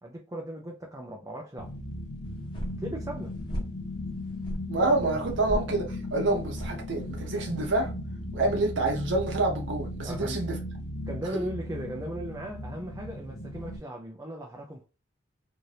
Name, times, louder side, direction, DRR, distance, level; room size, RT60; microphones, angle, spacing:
voice 1, 0.0-1.7 2.8-3.4 10.0-10.5 11.1-14.9, right 1 dB, 15° right, 0.4 m, -37 dB
sound 1, 1.6-13.8, left 1 dB, 50° left, 1.4 m, -37 dB
sound 2, 2.3-7.7, equal, 25° left, 1.1 m, -39 dB
voice 2, 4.7-7.9 8.3-10.6 11.3-11.4, right 2 dB, 70° right, 0.7 m, -27 dB
2.7 x 2.6 x 3.2 m
head